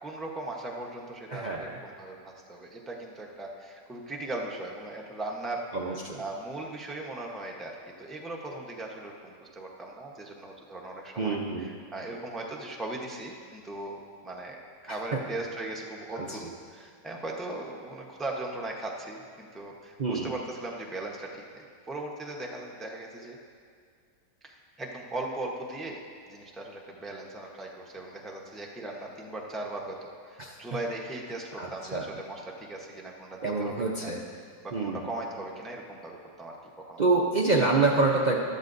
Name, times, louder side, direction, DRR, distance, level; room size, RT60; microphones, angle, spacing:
voice 1, 0.0-16.4 16.7-23.4 24.4-26.0 26.3-36.6 36.9-37.0, right 2 dB, ahead, -1 dB, 0.4 m, -38 dB
voice 2, 1.3-1.7 5.7-6.2 11.2-11.7 16.3-16.4 20.0-20.3 30.4-30.6 31.6-32.1 33.4-34.2 34.7-35.1 37.0-38.4, right 3 dB, 80° right, -2 dB, 0.4 m, -26 dB
14.0 x 12.5 x 2.6 m, 2.2 s
omnidirectional pair, 1.9 m